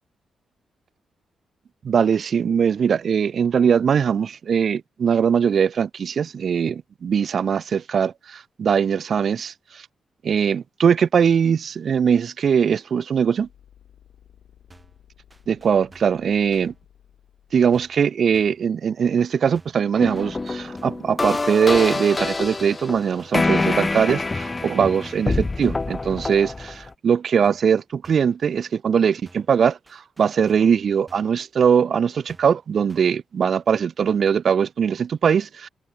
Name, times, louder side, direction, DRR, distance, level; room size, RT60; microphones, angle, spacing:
voice 1, 1.8-9.9 10.2-13.5 15.5-16.7 17.5-35.7, right 7 dB, 55° right, 0.6 m, -21 dB
sound 1, 13.4-18.2, left 10 dB, 75° left, 5.9 m, -55 dB
sound 2, 14.7-15.0 15.3-16.2 16.5-16.8 17.7-18.0 18.3-18.7 19.5-19.9 20.1-21.1 21.4-21.7 22.6-22.9 23.2-23.5 24.4-24.7 25.0-25.9 26.2-26.5 27.4-27.8 28.0-28.4 29.2-29.6 29.9-30.8 31.1-31.4 32.3-32.6 32.9-33.2, right 2 dB, 15° right, 5.5 m, -52 dB
sound 3, 20.0-26.9, left 3 dB, 25° left, 0.5 m, -26 dB
cardioid pair, 105°, 0 cm